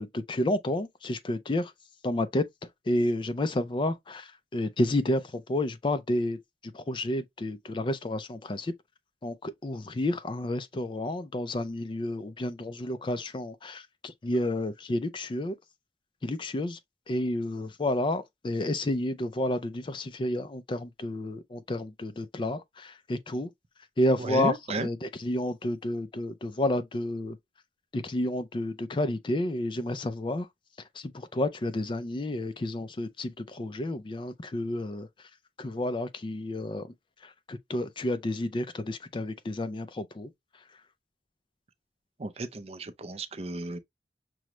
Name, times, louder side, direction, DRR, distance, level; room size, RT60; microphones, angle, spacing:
voice 1, 0.0-1.7 2.0-8.7 9.2-15.6 16.2-16.8 17.1-23.5 24.0-27.4 27.9-30.5 30.8-35.3 35.6-40.8, left 1 dB, 30° left, 0.4 m, -31 dB
voice 2, 24.2-24.9 42.2-43.8, right 2 dB, 35° right, 0.5 m, -34 dB
6.1 x 2.1 x 2.9 m
head